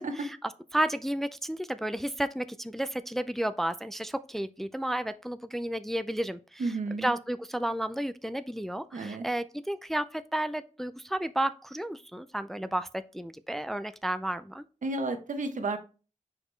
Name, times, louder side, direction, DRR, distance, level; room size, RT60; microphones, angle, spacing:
voice 1, 0.0-14.6, right 1 dB, ahead, 0.4 m, -32 dB
voice 2, 6.6-7.1 8.9-9.3 14.8-15.8, right 3 dB, 75° right, 1.0 m, -32 dB
6.4 x 4.9 x 3.2 m
wide cardioid pair, 90°, 13 cm